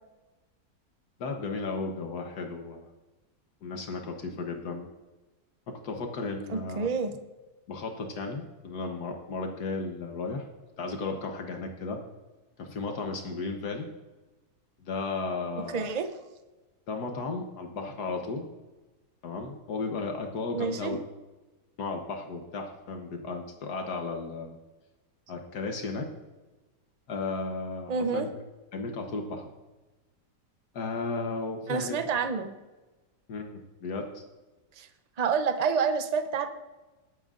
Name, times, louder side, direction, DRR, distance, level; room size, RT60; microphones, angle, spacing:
voice 1, 1.2-2.8 3.6-4.9 5.7-6.9 7.7-10.5 10.8-12.0 12.6-13.9 14.8-15.9 16.9-18.5 19.2-21.0 21.8-24.6 25.3-26.1 27.1-28.3 28.7-29.5 30.7-32.0 33.3-34.2, left 3 dB, 75° left, 4 dB, 1.5 m, -34 dB
voice 2, 6.5-7.2 15.5-16.1 20.5-20.9 27.9-28.3 31.7-32.5 34.8-34.9 35.2-36.5, right 5 dB, 40° right, 8 dB, 0.6 m, -28 dB
19.0 x 9.1 x 2.5 m, 1.2 s
omnidirectional pair, 1.7 m